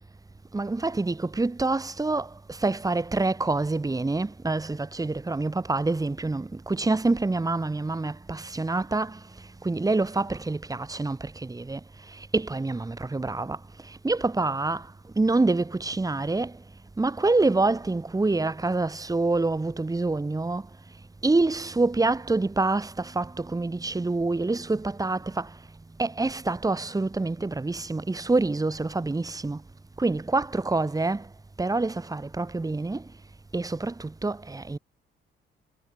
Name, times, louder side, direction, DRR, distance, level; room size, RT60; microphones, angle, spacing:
voice 1, 0.5-9.2 9.6-11.8 12.1-14.9 15.2-16.6 17.0-20.7 21.2-25.5 26.0-29.6 30.0-31.3 31.6-33.0 33.5-34.8, right 3 dB, 15° right, 2.8 m, -26 dB
cardioid pair, 90°, 20 cm